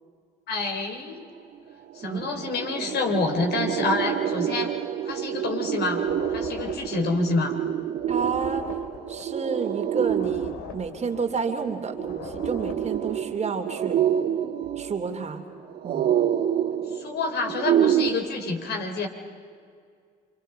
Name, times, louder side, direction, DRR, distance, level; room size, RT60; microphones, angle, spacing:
voice 1, 0.5-1.2 1.9-4.7 5.1-6.0 6.3-7.6 16.9-19.1, left 3 dB, 60° left, 3 dB, 3.6 m, -28 dB
sound 1, 1.5-1.6 1.9-18.1, right 10 dB, 55° right, 2.5 m, -28 dB
voice 2, 2.0-2.4 8.1-8.8 9.1-14.0 14.8-15.4 15.8-16.1, right 5 dB, 35° right, 5 dB, 2.8 m, -30 dB
sound 2, 6.0-13.3, left 6 dB, 75° left, 2.7 m, -42 dB
27.5 x 26.0 x 5.6 m, 2.1 s
hypercardioid pair, 55°, 20 cm